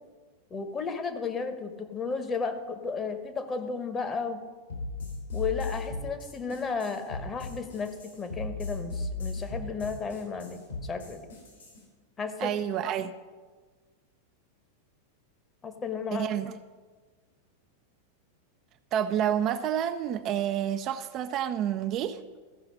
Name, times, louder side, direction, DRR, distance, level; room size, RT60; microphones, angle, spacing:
voice 1, 0.5-4.4 5.3-11.3 12.2-12.5 15.6-16.3, left 5 dB, 20° left, 1.0 m, -33 dB
sound 1, 4.7-11.8, left 2 dB, 70° left, 3.4 m, -36 dB
voice 2, 12.4-13.1 16.1-16.5 18.9-22.2, right 10 dB, 35° right, 0.4 m, -29 dB
14.0 x 5.6 x 5.5 m
figure-of-eight pair, 90°, 0 cm